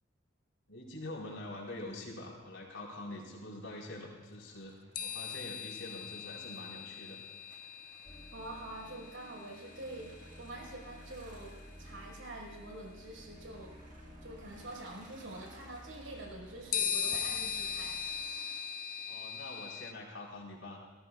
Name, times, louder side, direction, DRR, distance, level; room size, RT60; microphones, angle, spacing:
voice 1, 0.7-7.2 19.1-20.8, left 1 dB, 75° left, -3 dB, 4.5 m, -45 dB
sound 1, 4.3-19.2, right 2 dB, 40° right, 1.8 m, -60 dB
sound 2, 4.9-10.6 11.9-12.0 16.7-19.9, left 8 dB, 45° left, 0.5 m, -39 dB
sound 3, 8.0-18.2, equal, 15° left, 1.5 m, -54 dB
voice 2, 8.3-13.7 14.2-18.0, right 1 dB, 80° right, -1 dB, 4.9 m, -46 dB
30.0 x 16.0 x 2.4 m, 1.2 s
head